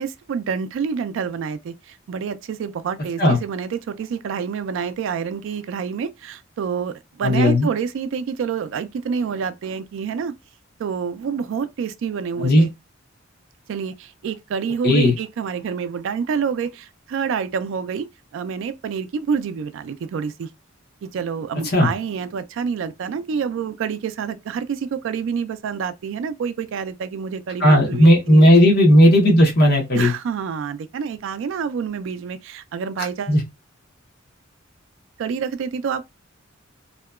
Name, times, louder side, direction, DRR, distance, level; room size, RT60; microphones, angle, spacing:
voice 1, 0.0-10.4 10.8-12.7 13.7-18.1 18.3-20.5 21.0-28.5 29.9-33.4 35.2-36.1, right 6 dB, 65° right, 0.3 m, -27 dB
voice 2, 7.2-7.7 12.4-12.6 14.8-15.1 21.7-21.9 27.6-30.1 33.3-33.4, equal, 50° left, 0.8 m, -14 dB
2.7 x 2.2 x 2.3 m
head